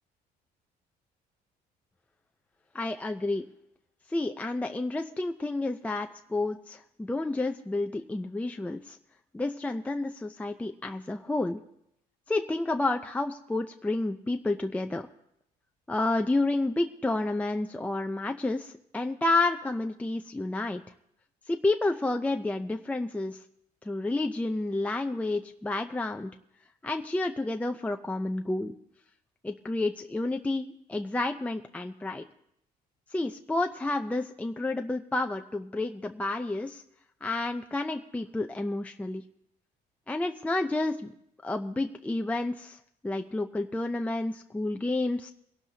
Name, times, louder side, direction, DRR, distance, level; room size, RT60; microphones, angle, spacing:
voice 1, 2.7-3.5 4.1-9.0 9.3-11.6 12.3-15.1 15.9-20.8 21.5-23.4 23.8-26.3 26.8-28.8 29.4-32.2 33.1-36.8 37.2-39.2 40.1-41.1 41.4-45.3, left 2 dB, 10° left, 5 dB, 0.5 m, -30 dB
23.5 x 12.0 x 2.8 m, 0.76 s
cardioid pair, 110°, 17 cm